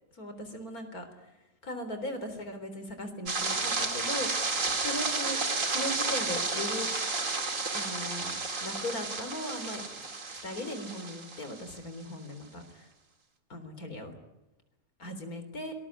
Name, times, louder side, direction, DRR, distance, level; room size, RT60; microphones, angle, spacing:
voice 1, 0.1-1.1 1.6-4.3 4.8-5.4 5.7-6.9 7.7-10.1 10.4-12.9 13.5-14.1 15.0-15.7, left 1 dB, 55° left, 8 dB, 4.2 m, -38 dB
sound 1, 3.3-11.8, right 3 dB, 45° right, 2.8 m, -32 dB
26.0 x 20.5 x 9.9 m, 0.99 s
omnidirectional pair, 1.9 m